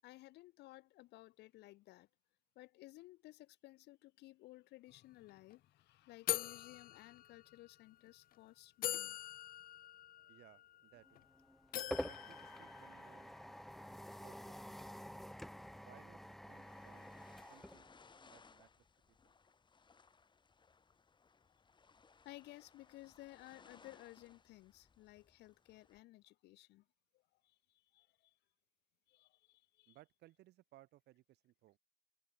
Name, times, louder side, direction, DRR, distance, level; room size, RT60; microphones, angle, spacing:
voice 1, 0.0-2.1 2.6-9.2 22.2-26.8 27.4-28.3 29.1-30.0, left 18 dB, 85° left, 2.7 m, -57 dB
sound 1, 4.9-5.0 5.3-5.5 6.3-7.7 8.3-8.4 8.8-11.2 11.7-13.4, left 13 dB, 60° left, 0.8 m, -43 dB
voice 2, 10.3-11.2 12.0-13.3 14.1-14.9 15.7-17.1 17.5-17.9 18.2-19.3 29.9-31.8, right 16 dB, 75° right, 4.2 m, -64 dB
sound 2, 11.1-18.5, equal, ahead, 0.4 m, -49 dB
sound 3, 16.5-26.0, left 5 dB, 25° left, 4.5 m, -65 dB
cardioid pair, 110°, 17 cm